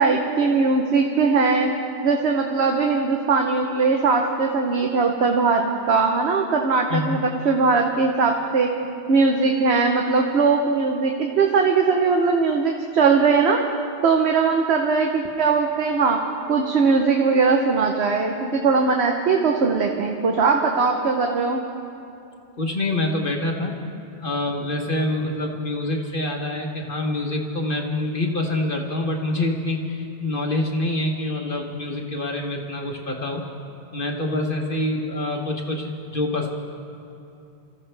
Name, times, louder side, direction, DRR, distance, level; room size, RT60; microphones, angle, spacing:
voice 1, 0.0-1.7 2.0-8.7 9.1-13.6 14.0-16.2 16.5-21.6, right 4 dB, 75° right, 2 dB, 1.2 m, -20 dB
voice 2, 6.9-7.2 22.6-23.8 24.2-33.4 33.9-36.5, left 2 dB, 50° left, 0 dB, 1.3 m, -26 dB
25.5 x 14.5 x 3.3 m, 2.7 s
omnidirectional pair, 1.1 m